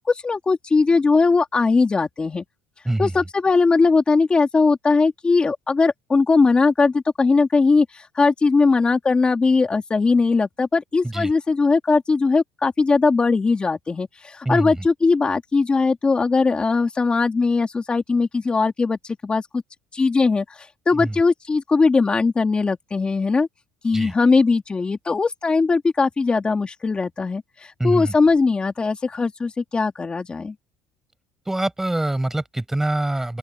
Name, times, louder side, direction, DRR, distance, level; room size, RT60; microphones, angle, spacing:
voice 1, 0.1-2.4 3.0-19.6 19.9-23.5 23.8-30.5, left 4 dB, 20° left, 2.2 m, -20 dB
voice 2, 14.4-14.9 20.9-21.2 23.9-24.1 27.8-28.2 31.5-33.4, right 1 dB, 5° right, 4.9 m, -24 dB
open air
cardioid pair, 110°, 5 cm